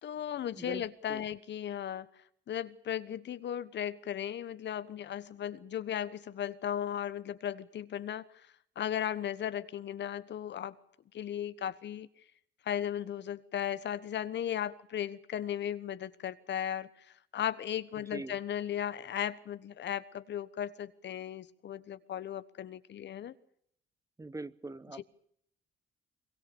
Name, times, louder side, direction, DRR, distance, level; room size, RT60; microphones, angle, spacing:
voice 1, 0.0-2.1 2.5-8.5 8.7-10.8 11.1-12.1 12.6-23.3, left 10 dB, 65° left, 15 dB, 1.3 m, -36 dB
voice 2, 24.2-25.0, right 2 dB, 15° right, 16 dB, 1.0 m, -42 dB
22.5 x 22.5 x 7.1 m, 0.69 s
cardioid pair, 90°, 20 cm